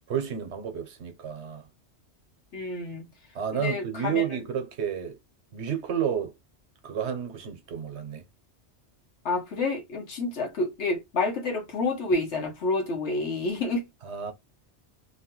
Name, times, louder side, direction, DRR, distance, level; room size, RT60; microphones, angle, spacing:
voice 1, 0.1-1.7 3.3-5.2 5.5-6.3 6.8-8.2 14.0-14.3, right 8 dB, 80° right, 1.1 m, -31 dB
voice 2, 2.5-3.1 3.5-4.2 9.2-13.9, left 3 dB, 90° left, 1.3 m, -29 dB
3.0 x 2.3 x 2.9 m
omnidirectional pair, 1.1 m